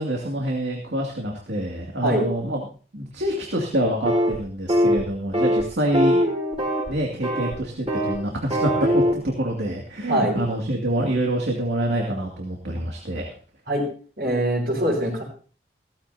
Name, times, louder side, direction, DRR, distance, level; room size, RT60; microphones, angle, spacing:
voice 1, 0.0-2.7 2.9-6.2 6.9-13.4, right 1 dB, 90° right, -1 dB, 2.5 m, -26 dB
sound 1, 4.0-4.4 4.7-5.0 5.3-5.6 5.9-6.9 7.2-7.5 7.9-8.2 8.5-9.1, equal, 35° right, 4.7 m, -21 dB
voice 2, 14.2-15.2, right 1 dB, 60° right, -4 dB, 5.9 m, -22 dB
16.5 x 14.5 x 2.8 m, 0.40 s
head